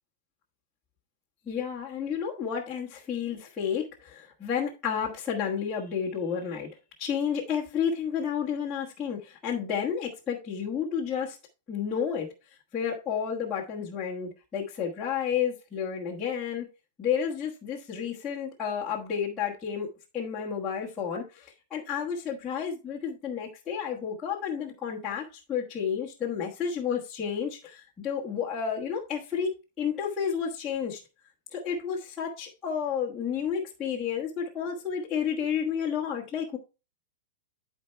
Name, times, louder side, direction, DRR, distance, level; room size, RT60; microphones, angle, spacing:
voice 1, 1.5-6.7 7.0-11.4 11.7-12.3 12.7-16.7 17.0-19.9 20.1-29.5 29.8-31.0 31.5-36.6, left 7 dB, 10° left, 1.3 m, -31 dB
12.0 x 4.6 x 3.3 m
supercardioid pair, 170°, 0 cm